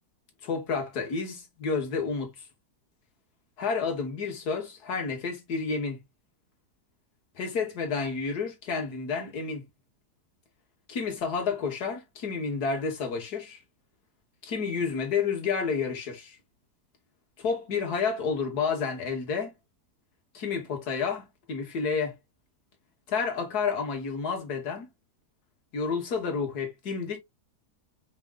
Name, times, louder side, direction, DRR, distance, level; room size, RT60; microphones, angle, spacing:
voice 1, 0.4-2.4 3.6-6.0 7.4-9.6 10.9-13.6 14.4-16.4 17.4-19.5 20.3-22.1 23.1-24.9 25.7-27.2, left 5 dB, 70° left, 1.9 m, -30 dB
5.1 x 3.7 x 2.3 m
omnidirectional pair, 1.8 m